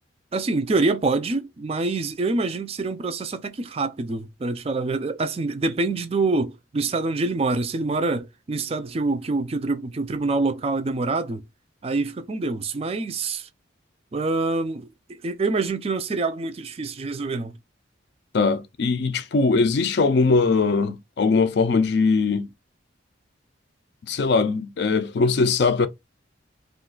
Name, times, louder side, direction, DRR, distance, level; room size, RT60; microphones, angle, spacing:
voice 1, 0.3-11.4 11.8-13.5 14.1-17.6, right 3 dB, 30° right, 0.3 m, -26 dB
voice 2, 18.3-22.5 24.1-25.9, left 4 dB, 55° left, 0.4 m, -21 dB
2.4 x 2.3 x 3.7 m
head